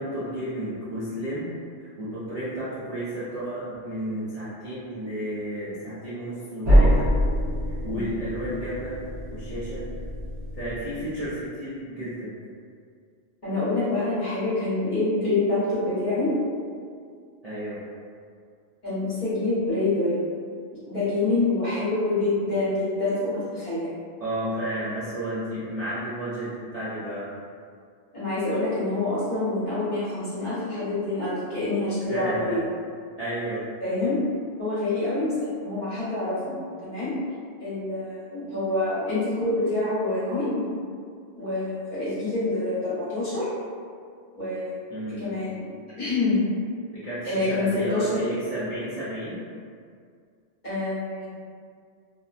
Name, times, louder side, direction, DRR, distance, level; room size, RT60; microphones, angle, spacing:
voice 1, 0.0-1.5 1.8-7.1 7.6-9.0 9.3-9.8 10.5-12.3 17.4-17.8 24.2-27.3 32.1-32.6 33.2-33.7 44.9-45.2 46.9-49.4, right 1 dB, 50° right, -12 dB, 0.5 m, -32 dB
sound 1, 6.6-11.3, equal, 65° right, 0.9 m, -24 dB
voice 2, 13.4-16.3 18.8-20.2 20.7-23.9 28.1-32.6 33.8-34.2 34.6-37.1 37.6-40.7 41.4-43.5 44.3-44.7 45.2-45.6 46.0-46.4 47.2-48.2 50.6-51.3, left 2 dB, 45° left, -12 dB, 1.1 m, -26 dB
2.6 x 2.1 x 2.4 m, 2.2 s
omnidirectional pair, 1.1 m